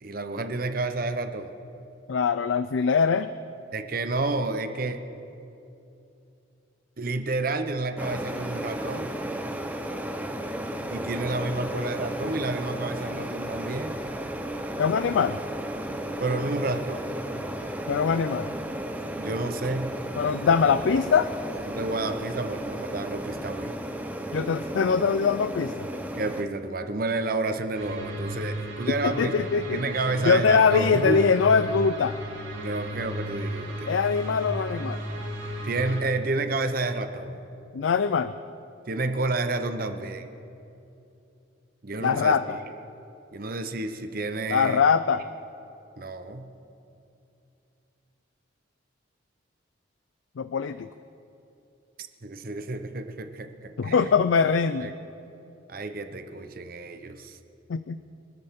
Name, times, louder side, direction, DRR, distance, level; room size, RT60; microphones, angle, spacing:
voice 1, 0.0-1.5 3.7-5.0 7.0-9.2 10.9-14.0 16.2-17.2 19.1-20.0 21.7-23.7 26.1-29.4 29.7-31.2 32.6-33.9 35.6-37.4 38.9-40.3 41.8-42.6 43.3-44.8 46.0-46.5 52.0-54.1 54.8-54.9 55.7-57.4, right 2 dB, 45° right, 8 dB, 0.8 m, -30 dB
voice 2, 2.1-3.3 14.8-15.4 17.9-18.5 20.2-21.3 24.3-25.9 29.0-29.8 30.2-32.1 33.9-35.1 37.7-38.3 42.0-42.6 44.5-45.2 50.4-50.9 53.8-54.9 57.7-58.0, left 5 dB, 75° left, 12 dB, 0.4 m, -22 dB
sound 1, 7.7-23.8, equal, 45° left, 3.0 m, -51 dB
sound 2, 8.0-26.4, right 1 dB, 10° right, 0.7 m, -34 dB
sound 3, 27.7-36.0, equal, 85° right, 2.5 m, -34 dB
24.5 x 13.0 x 3.7 m, 2.8 s
head